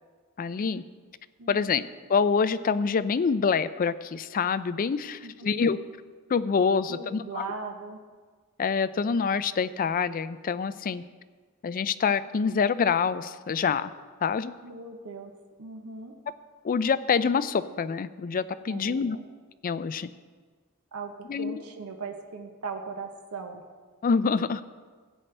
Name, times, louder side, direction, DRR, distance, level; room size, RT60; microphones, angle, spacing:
voice 1, 0.4-0.8 1.5-1.8 2.1-5.8 6.3-7.4 8.6-11.0 11.6-13.9 14.2-14.5 16.6-19.2 19.6-20.1 21.3-21.6 24.0-24.6, left 5 dB, 40° left, 14 dB, 0.4 m, -26 dB
voice 2, 1.4-1.7 5.2-5.5 6.9-8.0 14.6-15.3 15.6-16.1 18.7-19.2 20.9-23.6, right 4 dB, 80° right, 3 dB, 1.0 m, -39 dB
16.0 x 9.0 x 3.3 m, 1.5 s
head